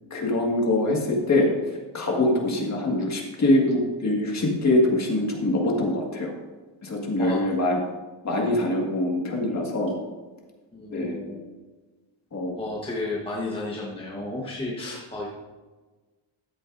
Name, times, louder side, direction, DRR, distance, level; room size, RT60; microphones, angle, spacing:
voice 1, 0.1-1.5 1.9-6.3 6.8-7.8 8.2-9.9 10.9-11.2 12.3-12.5, left 1 dB, 35° left, 0 dB, 1.9 m, -23 dB
voice 2, 10.7-11.4 12.5-15.3, left 2 dB, 10° left, -3 dB, 1.2 m, -32 dB
13.5 x 8.2 x 2.6 m, 1.3 s
cardioid pair, 160°, 50 cm